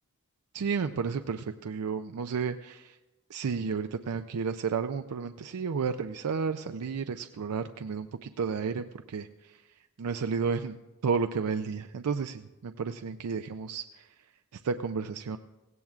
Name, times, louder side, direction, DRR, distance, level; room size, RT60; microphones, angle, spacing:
voice 1, 0.5-2.9 3.3-9.6 10.0-10.7 11.0-14.1 14.6-15.4, right 5 dB, 90° right, 8 dB, 0.4 m, -32 dB
17.5 x 16.5 x 2.4 m, 1.1 s
head